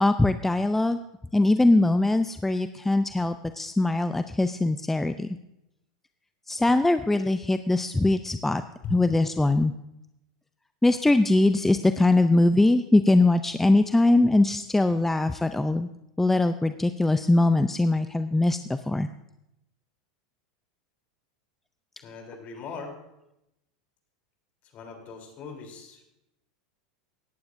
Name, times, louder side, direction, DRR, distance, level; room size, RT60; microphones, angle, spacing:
voice 1, 0.0-1.0 1.3-5.3 6.5-8.6 8.9-9.7 10.8-15.9 16.2-19.1, left 2 dB, 5° left, 10 dB, 0.4 m, -22 dB
voice 2, 22.0-22.9 24.7-26.1, left 5 dB, 45° left, 3 dB, 3.3 m, -39 dB
17.0 x 11.5 x 2.6 m, 0.87 s
hypercardioid pair, 100°, 4 cm